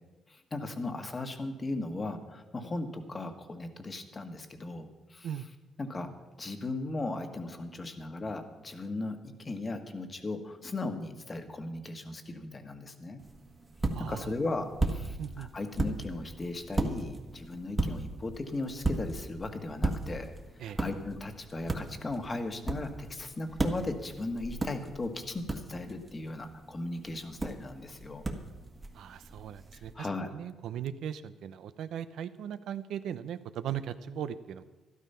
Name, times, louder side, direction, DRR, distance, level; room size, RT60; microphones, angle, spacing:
voice 1, 0.3-5.3 5.8-6.1 6.4-13.2 14.0-20.3 20.6-28.2 29.7-30.3, left 2 dB, 30° left, 7 dB, 1.5 m, -37 dB
sound 1, 13.2-29.9, right 2 dB, 25° right, 1.5 m, -36 dB
voice 2, 13.9-14.3 15.2-15.5 20.6-20.8 28.9-30.1 30.3-34.6, right 9 dB, 75° right, 12 dB, 0.6 m, -38 dB
12.5 x 12.0 x 5.7 m, 1.2 s
cardioid pair, 90°, 0 cm